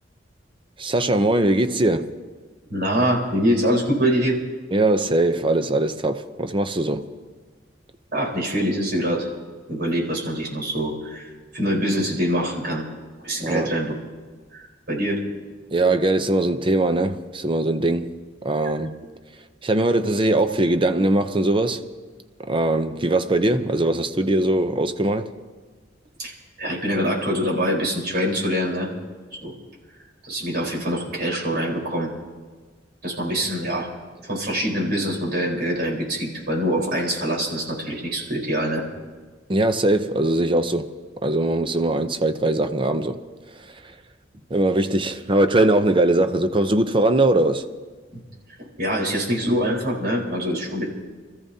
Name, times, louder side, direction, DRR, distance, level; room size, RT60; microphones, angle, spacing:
voice 1, 0.8-2.1 4.7-7.1 13.4-13.7 15.7-18.1 18.4-19.0 19.6-21.9 22.5-25.3 39.5-40.9 41.2-43.2 44.5-47.7, right 2 dB, 25° right, 0.7 m, -21 dB
voice 2, 2.7-4.4 8.1-9.3 9.7-12.8 13.2-13.9 14.5-15.2 26.2-26.3 26.6-28.9 29.4-29.5 30.2-32.1 33.0-33.9 34.3-38.8 48.8-50.8, equal, 55° right, 4.2 m, -24 dB
28.0 x 14.0 x 2.8 m
head